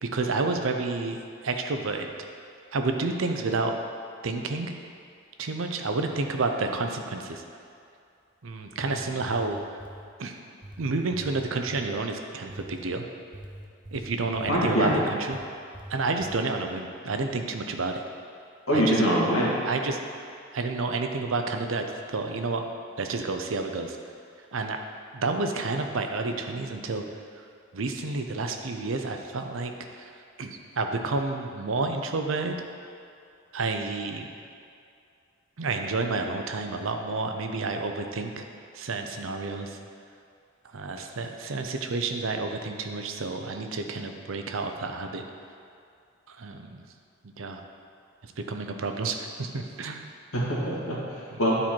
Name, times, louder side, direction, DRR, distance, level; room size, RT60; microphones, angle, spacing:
voice 1, 0.0-2.1 2.7-3.8 4.2-4.7 5.4-7.4 8.4-9.6 10.2-10.4 10.8-13.1 13.9-15.4 15.9-18.0 18.7-19.2 19.6-20.0 20.5-22.6 23.0-24.0 24.5-24.8 25.1-27.0 27.7-30.1 30.4-32.6 33.5-34.3 35.6-38.4 38.7-39.8 40.7-45.2 46.3-46.9 47.2-47.6 48.2-50.0, right 3 dB, 70° right, 5 dB, 0.6 m, -30 dB
sound 1, 8.6-10.1 10.6-12.0 12.5-12.9 13.3-15.5 15.7-16.4, right 1 dB, 20° right, 0.6 m, -44 dB
voice 2, 14.5-14.9 18.7-19.5 50.3-51.0 51.4-51.6, equal, 85° left, -6 dB, 2.0 m, -23 dB
9.8 x 4.5 x 4.5 m, 2.4 s
head